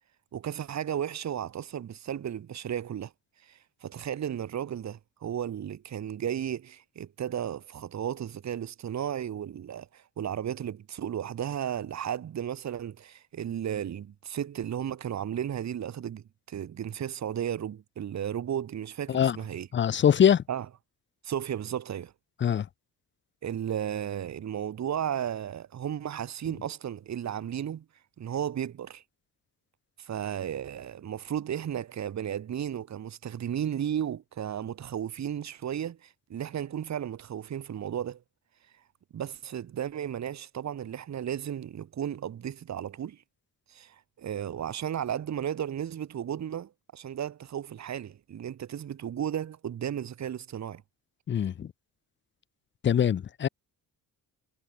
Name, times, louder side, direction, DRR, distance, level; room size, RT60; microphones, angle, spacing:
voice 1, 0.3-3.1 3.4-19.7 20.5-20.6 21.2-22.1 23.4-27.8 28.2-29.0 30.0-38.2 39.1-43.2 43.7-50.8, right 9 dB, 45° right, 1.8 m, -34 dB
voice 2, 19.7-20.4 22.4-22.7 51.3-51.7 52.8-53.5, left 9 dB, 30° left, 0.6 m, -23 dB
cardioid pair, 140°, 37 cm